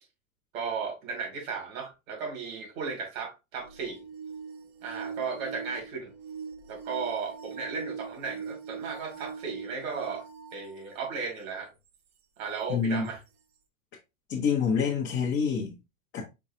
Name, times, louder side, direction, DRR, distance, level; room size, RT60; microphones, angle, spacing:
voice 1, 0.5-4.0 4.8-6.1 6.7-10.2 10.5-11.7 12.4-13.2, right 5 dB, 70° right, 2.6 m, -35 dB
sound 1, 3.6-11.2 11.9-12.0 13.0-13.1, right 6 dB, 25° right, 0.5 m, -42 dB
voice 2, 12.7-13.1 14.3-15.7 16.1-16.2, left 6 dB, 25° left, 1.0 m, -27 dB
4.8 x 3.9 x 2.7 m
supercardioid pair, 145°, 42 cm